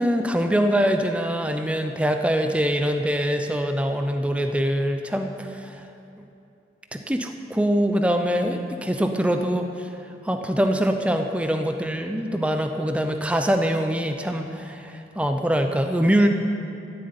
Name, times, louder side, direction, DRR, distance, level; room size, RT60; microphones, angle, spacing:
voice 1, 0.0-5.9 6.9-16.3, equal, 5° right, 5 dB, 0.6 m, -24 dB
13.5 x 7.8 x 9.6 m, 2.7 s
head